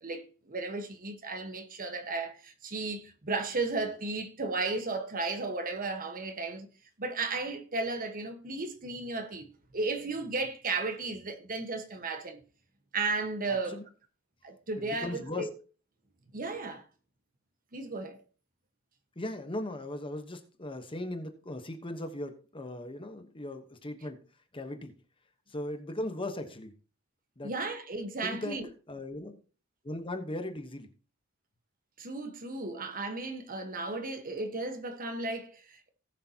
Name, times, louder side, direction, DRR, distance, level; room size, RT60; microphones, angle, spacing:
voice 1, 0.0-6.7 7.0-12.4 12.9-13.8 14.4-15.5 16.3-16.8 17.7-18.2 27.4-28.7 32.0-35.9, right 3 dB, 40° right, 1.3 m, -34 dB
voice 2, 13.5-13.8 14.8-15.5 19.2-24.2 24.5-24.9 25.5-26.7 27.4-27.5 28.2-28.6 28.9-29.4 29.8-30.9, left 1 dB, 25° left, 1.1 m, -38 dB
18.0 x 6.7 x 2.9 m
head